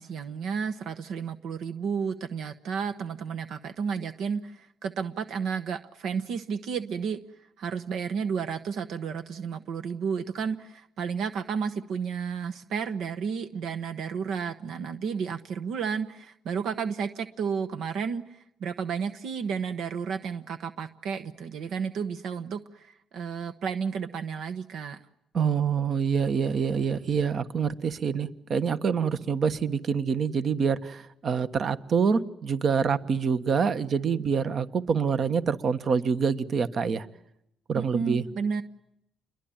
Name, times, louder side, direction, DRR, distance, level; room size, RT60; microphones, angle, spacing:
voice 1, 0.0-7.2 7.6-25.0 37.8-38.6, right 6 dB, 75° right, 10 dB, 1.1 m, -32 dB
voice 2, 25.3-37.1 37.7-38.2, right 6 dB, 55° right, 12 dB, 1.4 m, -26 dB
29.0 x 22.5 x 8.9 m, 0.79 s
cardioid pair, 90°, 0 cm